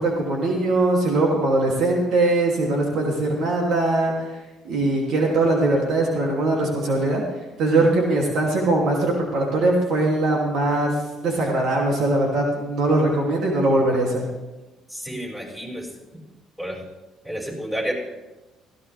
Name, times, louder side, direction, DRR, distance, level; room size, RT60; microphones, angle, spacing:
voice 1, 0.0-4.1 4.6-7.2 7.6-10.9 11.2-14.2, right 2 dB, 70° right, -1 dB, 2.8 m, -21 dB
voice 2, 14.9-15.9 16.6-16.8 17.2-17.9, equal, 10° right, -3 dB, 5.9 m, -30 dB
17.0 x 15.0 x 3.5 m, 1.1 s
supercardioid pair, 80°, 0 cm